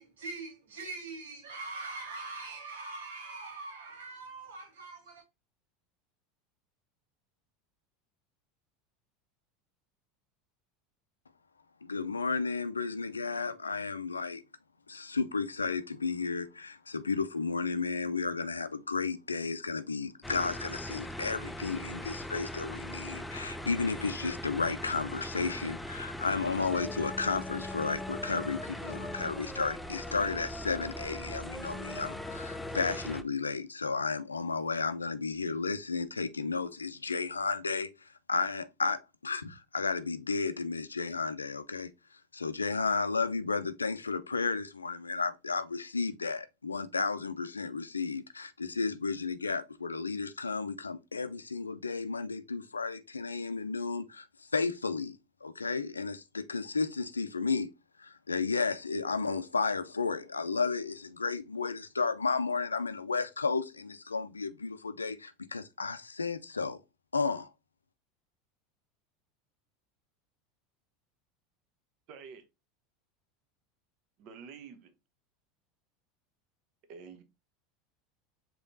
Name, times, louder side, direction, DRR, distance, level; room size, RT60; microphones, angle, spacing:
voice 1, 0.0-5.2, right 3 dB, 75° right, 1.6 m, -42 dB
voice 2, 11.8-14.4 14.9-41.9 42.3-57.7 58.0-66.8 67.1-67.5, left 4 dB, 90° left, 0.4 m, -33 dB
sound 1, 20.2-33.2, left 1 dB, 5° left, 0.4 m, -40 dB
voice 3, 72.1-72.5 74.2-74.9 76.9-77.2, right 6 dB, 50° right, 0.9 m, -48 dB
5.1 x 3.1 x 2.6 m
figure-of-eight pair, 80°, 0 cm